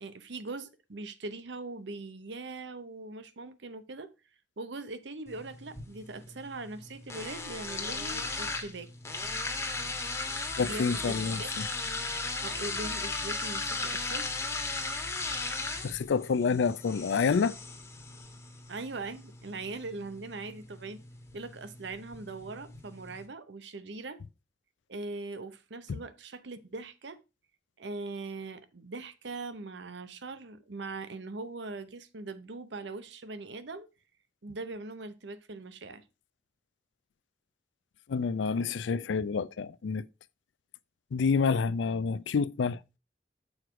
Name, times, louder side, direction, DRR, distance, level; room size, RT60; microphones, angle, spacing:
voice 1, 0.0-4.1 4.6-8.9 10.6-11.5 12.4-14.3 18.7-21.0 21.3-24.2 24.9-27.2 27.8-33.9 34.4-36.0, right 3 dB, 80° right, 0.8 m, -41 dB
sound 1, 5.3-23.3, left 3 dB, 15° left, 1.2 m, -37 dB
voice 2, 10.6-11.7 15.8-17.5 38.1-40.0 41.1-42.8, left 5 dB, 85° left, 0.4 m, -28 dB
6.5 x 4.6 x 4.9 m
head